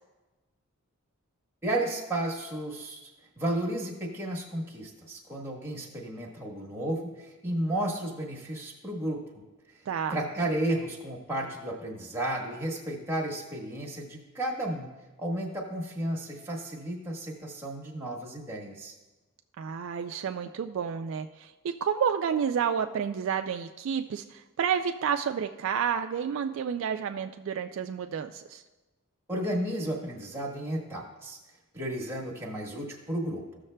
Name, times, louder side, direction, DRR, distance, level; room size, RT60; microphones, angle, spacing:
voice 1, 1.6-3.1 3.4-9.2 9.7-9.8 10.1-14.9 15.2-18.9 29.3-31.4 31.7-33.4, right 1 dB, 10° right, -3 dB, 1.2 m, -33 dB
voice 2, 9.9-10.2 19.6-28.6, right 7 dB, 60° right, 6 dB, 0.3 m, -30 dB
14.5 x 6.4 x 2.2 m, 1.2 s
head